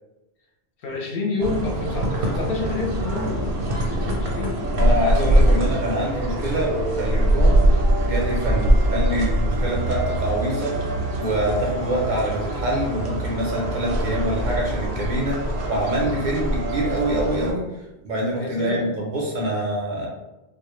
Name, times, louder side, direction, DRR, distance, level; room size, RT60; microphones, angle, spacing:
voice 1, 0.8-4.6 18.4-18.9, left 3 dB, 65° left, 0 dB, 0.7 m, -29 dB
sound 1, 1.4-17.5, right 1 dB, 85° right, 0.9 m, -23 dB
voice 2, 4.7-7.6 8.0-10.8 11.2-17.7 18.0-20.1, right 1 dB, 60° right, -2 dB, 0.6 m, -25 dB
2.1 x 2.0 x 3.0 m, 1.0 s
omnidirectional pair, 1.1 m